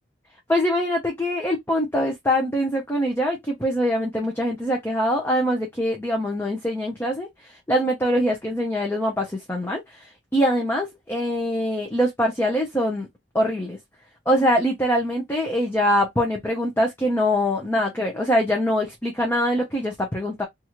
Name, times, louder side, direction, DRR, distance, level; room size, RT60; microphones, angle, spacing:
voice 1, 0.5-7.3 7.7-9.8 10.3-13.1 13.3-13.8 14.3-20.5, equal, 10° left, 0.6 m, -23 dB
3.0 x 2.4 x 2.9 m
head